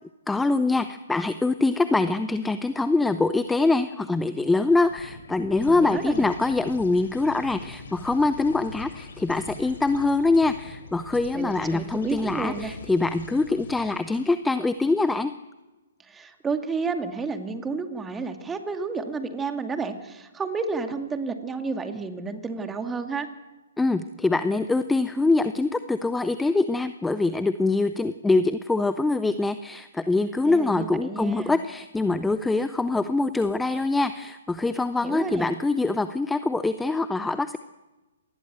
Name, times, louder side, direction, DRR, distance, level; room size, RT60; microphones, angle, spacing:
voice 1, 0.3-15.3 23.8-37.6, left 3 dB, 5° left, 12 dB, 0.7 m, -24 dB
sound 1, 4.8-14.3, left 4 dB, 60° left, 6.3 m, -43 dB
voice 2, 5.7-6.3 11.3-12.8 16.0-23.3 30.4-31.5 35.0-35.5, right 4 dB, 10° right, 6 dB, 2.3 m, -31 dB
27.0 x 20.0 x 8.1 m, 1.1 s
figure-of-eight pair, 125°, 0 cm